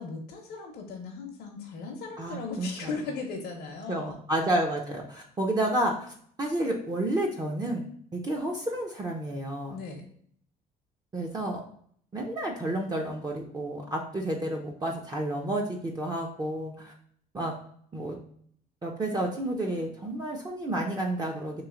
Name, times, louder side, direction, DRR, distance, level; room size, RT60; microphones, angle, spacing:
voice 1, 0.0-4.2 9.7-10.0, left 4 dB, 70° left, 0 dB, 0.7 m, -37 dB
voice 2, 2.2-2.9 3.9-6.1 6.4-7.8 8.1-9.8 11.1-11.6 12.1-16.9 17.3-17.6 17.9-18.2 18.8-21.6, right 1 dB, 25° right, 0 dB, 0.5 m, -30 dB
3.1 x 2.8 x 3.6 m, 0.62 s
cardioid pair, 110°, 17 cm